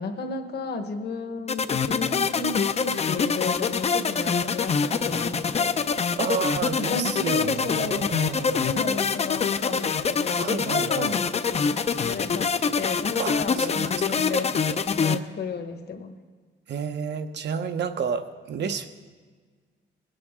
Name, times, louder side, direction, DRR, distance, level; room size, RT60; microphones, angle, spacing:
voice 1, 0.0-5.8 6.9-8.0 8.6-14.5 15.0-16.2, left 4 dB, 60° left, 5 dB, 1.3 m, -33 dB
sound 1, 1.5-15.2, left 5 dB, 35° left, 0.5 m, -25 dB
voice 2, 6.2-8.7 10.4-11.2 13.2-14.0 16.7-18.9, right 6 dB, 65° right, 9 dB, 0.9 m, -31 dB
20.5 x 8.6 x 3.6 m, 1.5 s
cardioid pair, 100°, 19 cm